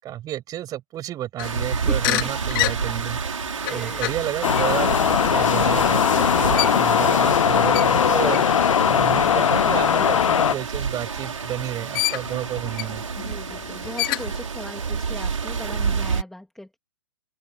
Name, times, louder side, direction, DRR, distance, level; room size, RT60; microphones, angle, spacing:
voice 1, 0.0-3.2 3.7-8.4 8.8-13.0, right 12 dB, 20° right, 7.4 m, -31 dB
sound 1, 1.4-11.5 11.9-14.5, left 20 dB, 40° left, 2.9 m, -31 dB
sound 2, 1.4-16.2, right 5 dB, 85° right, 6.2 m, -29 dB
voice 2, 1.7-2.3 3.6-4.1 13.1-16.8, left 1 dB, ahead, 2.9 m, -38 dB
sound 3, 4.4-10.5, left 8 dB, 80° left, 0.5 m, -19 dB
open air
hypercardioid pair, 135°, 16 cm